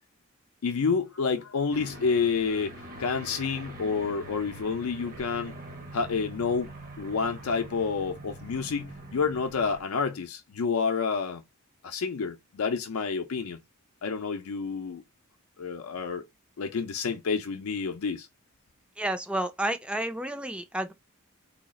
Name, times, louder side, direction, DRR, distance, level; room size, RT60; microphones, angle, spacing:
voice 1, 0.6-5.5 5.9-6.7 7.0-11.4 11.8-13.6 14.0-15.0 15.6-16.2 16.6-18.3, left 5 dB, 85° left, 0.5 m, -29 dB
Aircraft, 1.7-9.8, right 2 dB, 40° right, 0.8 m, -44 dB
voice 2, 19.0-20.9, right 1 dB, 5° right, 0.4 m, -30 dB
2.8 x 2.4 x 4.0 m
head